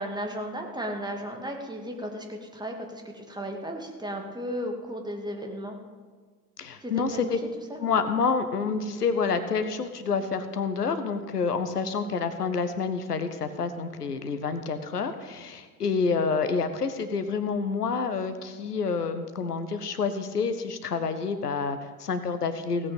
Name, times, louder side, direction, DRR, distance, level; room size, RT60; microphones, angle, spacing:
voice 1, 0.0-5.8 6.8-7.3 7.7-7.8, equal, 10° right, 2 dB, 2.1 m, -35 dB
voice 2, 6.6-7.4 7.8-22.9, left 5 dB, 85° left, 10 dB, 0.8 m, -28 dB
16.5 x 8.5 x 5.2 m, 1.5 s
figure-of-eight pair, 55°, 46 cm